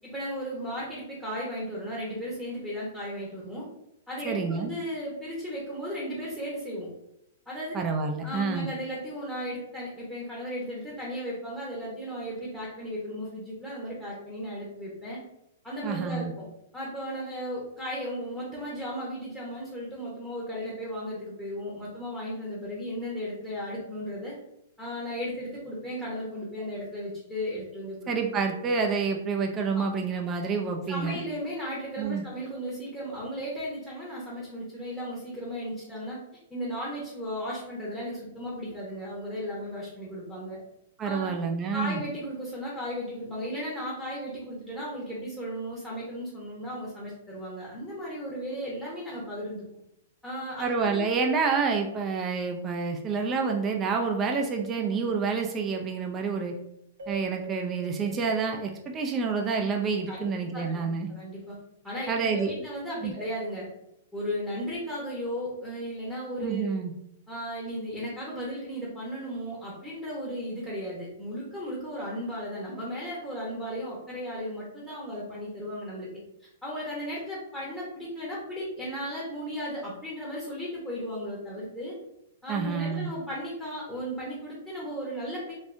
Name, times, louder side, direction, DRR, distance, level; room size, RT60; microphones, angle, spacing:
voice 1, 0.0-3.7 4.1-6.9 7.5-7.7 8.2-15.2 15.6-16.5 16.7-24.3 24.8-28.1 29.7-29.9 30.9-36.2 36.5-40.6 41.0-41.3 41.7-49.7 50.2-51.0 60.1-61.6 61.8-63.7 64.1-66.7 67.3-76.1 76.6-82.0 82.4-85.5, equal, 5° left, -6 dB, 0.8 m, -35 dB
voice 2, 4.2-4.7 7.7-8.7 15.8-16.3 28.1-31.2 32.0-32.2 41.0-42.0 50.6-56.5 57.1-61.1 62.1-62.5 63.0-63.1 66.4-66.9 82.5-83.1, right 5 dB, 20° right, 3 dB, 0.3 m, -28 dB
Keyboard (musical), 57.0-59.4, right 5 dB, 80° right, 0.6 m, -45 dB
3.4 x 2.6 x 2.5 m, 0.82 s
hypercardioid pair, 155°, 0 cm